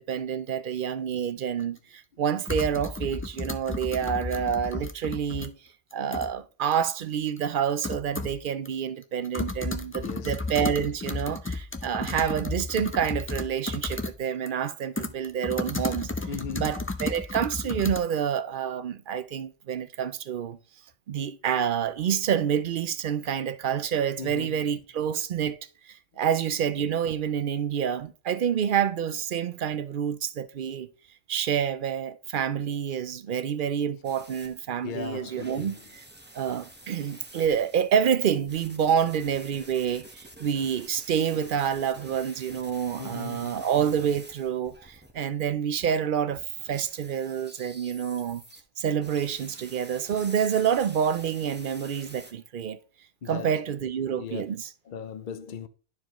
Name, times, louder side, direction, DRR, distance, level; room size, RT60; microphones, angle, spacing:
voice 1, 0.0-5.6 5.9-16.1 16.6-20.6 21.1-25.6 26.2-30.9 31.3-36.0 36.3-46.4 46.7-48.4 48.8-52.8 53.3-54.7, right 8 dB, 55° right, 0.6 m, -28 dB
sound 1, 1.6-1.7 2.5-5.5 5.9-6.3 6.7-6.8 7.4-7.5 7.8-8.4 8.7-8.8 9.0-14.2 14.5-18.0, left 2 dB, 20° left, 0.3 m, -33 dB
voice 2, 9.8-10.5 16.3-16.7 24.2-24.6 34.8-35.8 43.0-43.6 53.2-53.5 54.1-54.4 54.9-55.7, left 6 dB, 50° left, 0.7 m, -37 dB
sound 2, 34.0-45.5 46.3-48.6 49.0-52.3, right 1 dB, 10° right, 0.9 m, -48 dB
12.5 x 4.7 x 3.0 m
omnidirectional pair, 1.2 m